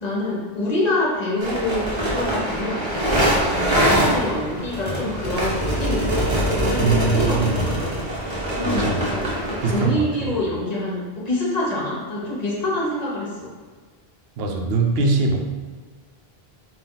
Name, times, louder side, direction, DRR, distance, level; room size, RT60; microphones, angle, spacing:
voice 1, 0.0-8.1 8.5-13.5, left 1 dB, 45° left, -5 dB, 0.9 m, -26 dB
sound 1, 1.4-9.9, right 1 dB, 30° right, 0.8 m, -23 dB
voice 2, 6.8-7.6 8.6-9.4 9.6-10.1 14.4-15.4, right 3 dB, 75° right, 2 dB, 0.8 m, -22 dB
4.1 x 2.4 x 3.6 m, 1.5 s
omnidirectional pair, 1.0 m